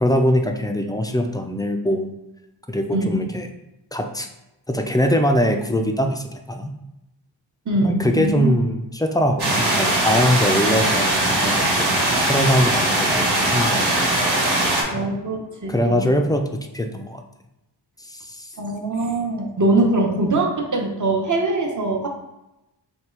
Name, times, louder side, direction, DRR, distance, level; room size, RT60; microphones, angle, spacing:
voice 1, 0.0-2.1 2.7-3.5 3.9-4.3 4.7-6.7 7.8-13.9 14.9-15.1 15.7-16.5 16.7-17.2 18.1-18.5, equal, 10° left, 4 dB, 0.4 m, -22 dB
voice 2, 2.9-3.3 7.7-8.6 14.9-16.1 18.6-22.1, right 2 dB, 40° right, 1 dB, 0.9 m, -22 dB
sound 1, 9.4-14.8, right 1 dB, 60° right, 1.3 m, -20 dB
3.5 x 2.3 x 4.4 m, 0.93 s
cardioid pair, 50°, 45 cm